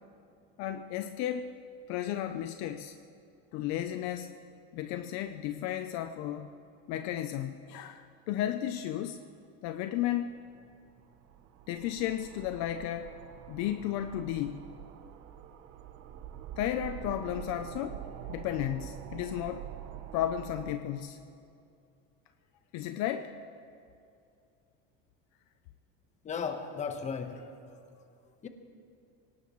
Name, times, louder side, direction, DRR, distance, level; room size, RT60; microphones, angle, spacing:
voice 1, 0.6-1.5 1.9-3.0 3.5-4.3 4.7-6.5 6.9-9.2 9.6-10.3 11.7-13.1 13.5-14.6 16.6-18.0 18.3-19.7 20.1-21.2 22.7-23.3, left 11 dB, 55° left, 8 dB, 0.7 m, -33 dB
sound 1, 10.3-20.8, right 11 dB, 45° right, 0.8 m, -46 dB
voice 2, 26.2-27.4 28.4-28.5, left 6 dB, 20° left, 6 dB, 1.2 m, -35 dB
23.5 x 18.5 x 3.1 m, 2.5 s
cardioid pair, 155°, 33 cm